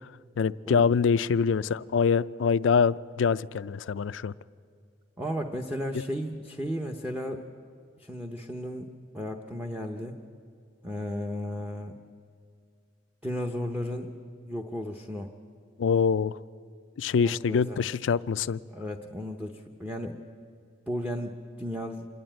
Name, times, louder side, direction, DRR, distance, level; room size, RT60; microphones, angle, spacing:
voice 1, 0.4-4.3 15.8-16.3 17.0-18.6, left 6 dB, 75° left, 16 dB, 0.4 m, -24 dB
voice 2, 5.2-7.4 8.0-10.2 10.8-12.0 13.2-14.1 14.4-15.3 17.1-17.9 18.7-20.2 20.9-22.1, equal, 10° right, 3 dB, 0.8 m, -34 dB
26.5 x 11.0 x 8.9 m, 2.3 s
head